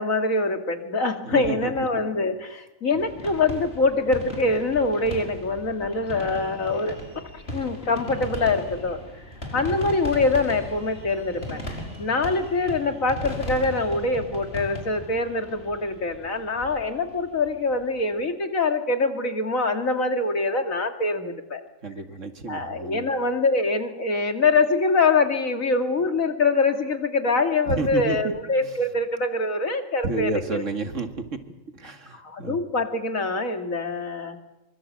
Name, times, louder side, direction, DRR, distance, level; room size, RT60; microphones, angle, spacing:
voice 1, 0.0-7.0 7.5-9.0 9.5-21.6 22.5-30.6 32.1-34.4, left 3 dB, 85° left, 5 dB, 2.8 m, -24 dB
voice 2, 1.2-2.0 2.9-3.0 21.8-23.1 27.7-28.3 28.6-28.7 30.0-31.1 31.7-32.6, right 3 dB, 65° right, 6 dB, 2.5 m, -31 dB
sound 1, 3.0-17.9, left 1 dB, 50° left, 5.7 m, -37 dB
26.5 x 24.5 x 7.7 m, 0.97 s
omnidirectional pair, 1.4 m